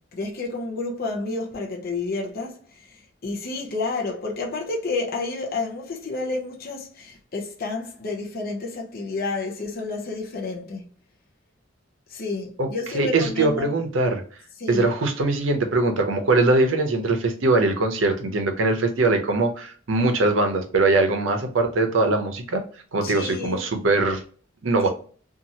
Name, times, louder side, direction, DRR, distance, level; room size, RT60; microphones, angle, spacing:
voice 1, 0.0-10.9 12.1-13.8 14.6-14.9 23.0-23.7 24.8-24.9, left 3 dB, 50° left, 0.6 m, -30 dB
voice 2, 12.9-14.2 14.7-22.6 22.9-24.2 24.6-24.9, right 2 dB, 85° right, 0.7 m, -21 dB
2.8 x 2.5 x 2.7 m
head